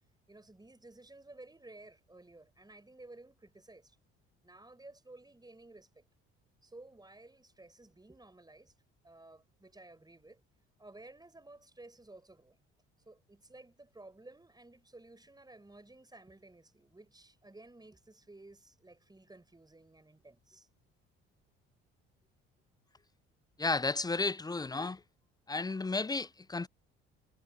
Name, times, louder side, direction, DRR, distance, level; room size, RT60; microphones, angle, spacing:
voice 1, 0.3-4.0 4.4-6.1 6.6-8.7 9.0-10.4 10.8-12.6 13.0-20.7, right 2 dB, 10° right, 5.0 m, -55 dB
voice 2, 23.6-25.0 25.5-26.7, left 3 dB, 10° left, 0.5 m, -33 dB
hypercardioid pair, 55°, 32 cm